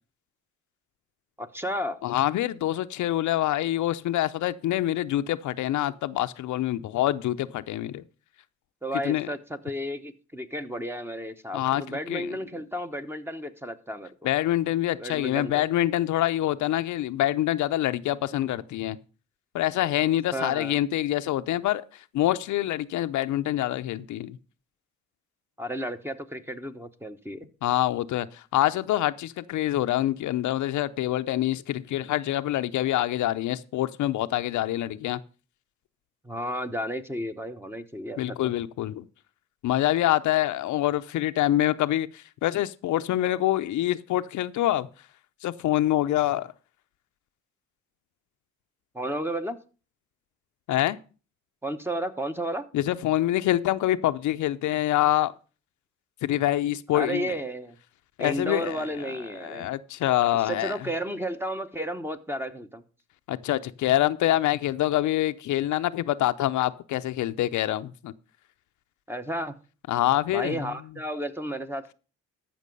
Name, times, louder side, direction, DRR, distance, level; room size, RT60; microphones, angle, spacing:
voice 1, 1.4-2.0 8.8-14.3 15.0-15.7 20.3-20.8 25.6-27.5 36.2-38.5 48.9-49.6 51.6-52.7 56.9-57.8 58.2-59.7 60.3-62.8 69.1-69.6 70.3-71.9, equal, 10° right, 1.1 m, -33 dB
voice 2, 2.0-8.0 9.0-9.3 11.5-12.3 14.2-19.0 19.5-21.8 22.1-24.4 27.6-35.2 38.2-39.1 39.6-44.9 45.4-46.5 50.7-51.0 52.7-55.3 56.2-57.4 58.2-58.8 59.4-60.7 63.3-68.1 69.9-70.6, left 14 dB, 75° left, 0.6 m, -26 dB
14.0 x 6.0 x 5.4 m
cardioid pair, 90°, 30 cm